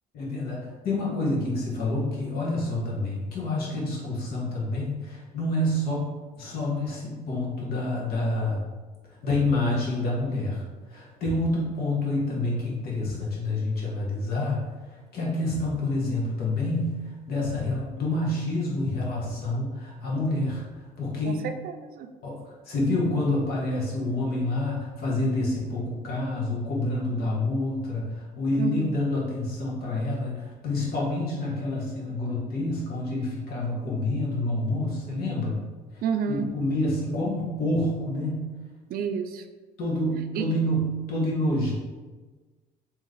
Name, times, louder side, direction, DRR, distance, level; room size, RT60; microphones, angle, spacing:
voice 1, 0.1-6.1 6.4-8.6 9.2-14.6 14.9-17.0 17.3-20.6 21.0-21.4 22.2-35.6 36.3-38.5 39.8-40.8 41.1-41.7, left 2 dB, 65° left, -4 dB, 1.4 m, -28 dB
voice 2, 21.6-22.1 28.6-28.9 36.0-36.5 38.9-39.4 40.3-40.5, right 6 dB, 60° right, 7 dB, 0.4 m, -29 dB
3.1 x 3.0 x 3.8 m, 1.3 s
cardioid pair, 110°, 17 cm